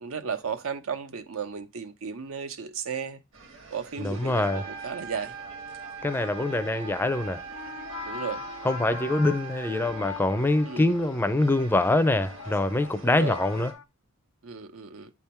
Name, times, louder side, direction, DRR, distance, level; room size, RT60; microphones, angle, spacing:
voice 1, 0.0-3.2 3.7-5.3 8.0-8.5 10.6-10.9 13.0-13.4 14.4-15.1, right 6 dB, 80° right, 0.7 m, -34 dB
sound 1, 3.3-13.7, right 1 dB, 65° right, 1.6 m, -46 dB
voice 2, 4.0-4.6 6.0-7.4 8.6-13.7, left 2 dB, 10° left, 0.4 m, -24 dB
Trumpet, 4.2-10.0, right 6 dB, 45° right, 1.1 m, -41 dB
sound 2, 7.3-13.8, left 7 dB, 75° left, 0.6 m, -42 dB
8.4 x 3.6 x 4.3 m
head